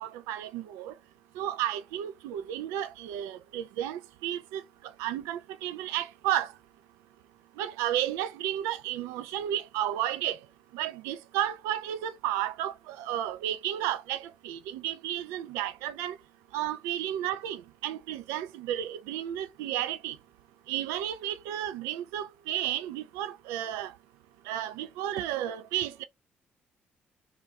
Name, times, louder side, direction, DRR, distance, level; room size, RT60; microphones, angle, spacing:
voice 1, 0.0-0.9 1.4-4.6 5.0-6.5 7.6-10.4 10.7-16.2 16.5-20.2 20.7-23.9 24.5-26.0, right 11 dB, 65° right, 0.3 m, -32 dB
3.2 x 2.5 x 4.1 m
figure-of-eight pair, 45°, 5 cm